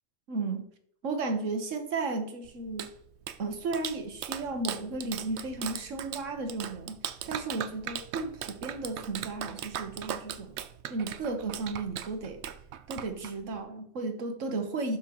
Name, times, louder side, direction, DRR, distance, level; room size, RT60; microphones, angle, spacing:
voice 1, 0.3-0.6 1.0-2.9 3.4-10.6 10.9-12.4 12.9-15.0, right 3 dB, 90° right, 5 dB, 1.5 m, -34 dB
Clapping, 2.4-13.6, right 9 dB, 70° right, 0.9 m, -39 dB
12.0 x 5.8 x 3.0 m, 0.68 s
omnidirectional pair, 1.3 m